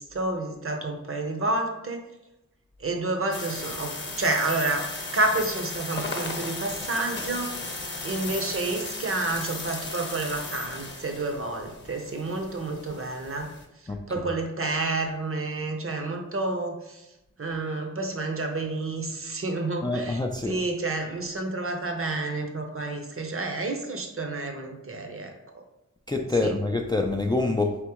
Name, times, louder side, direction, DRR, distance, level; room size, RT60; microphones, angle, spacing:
voice 1, 0.0-2.0 2.8-4.9 5.1-7.6 8.0-13.5 14.1-17.1 17.4-25.6 26.4-26.5, right 2 dB, 45° right, 3 dB, 0.7 m, -29 dB
sound 1, 3.3-13.6, left 2 dB, 35° left, 0.9 m, -36 dB
voice 2, 13.9-14.3 19.8-20.6 26.1-27.8, left 2 dB, 15° left, 2 dB, 0.3 m, -26 dB
4.1 x 3.5 x 2.9 m, 0.92 s
wide cardioid pair, 100°, 31 cm